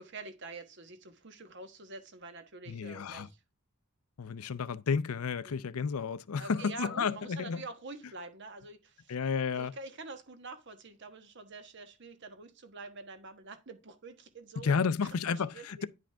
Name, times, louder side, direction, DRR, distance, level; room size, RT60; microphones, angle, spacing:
voice 1, 0.0-3.4 5.4-5.7 6.4-9.1 9.5-15.9, right 3 dB, 55° right, 1.3 m, -47 dB
voice 2, 2.7-3.3 4.2-7.6 9.1-9.7 14.6-15.8, left 5 dB, 90° left, 0.5 m, -32 dB
10.0 x 5.1 x 3.4 m
head